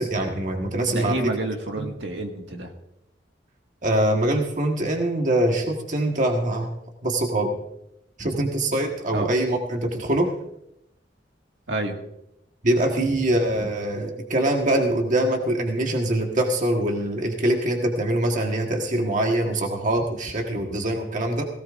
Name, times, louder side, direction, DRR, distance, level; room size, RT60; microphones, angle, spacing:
voice 1, 0.0-1.3 1.8-1.9 3.8-6.7 7.0-7.5 8.2-10.3 12.6-21.4, right 1 dB, 45° right, 2 dB, 1.5 m, -23 dB
voice 2, 0.9-2.7 9.1-9.3 11.7-12.0, right 2 dB, 75° right, 3 dB, 1.9 m, -29 dB
18.0 x 17.0 x 2.6 m, 0.81 s
head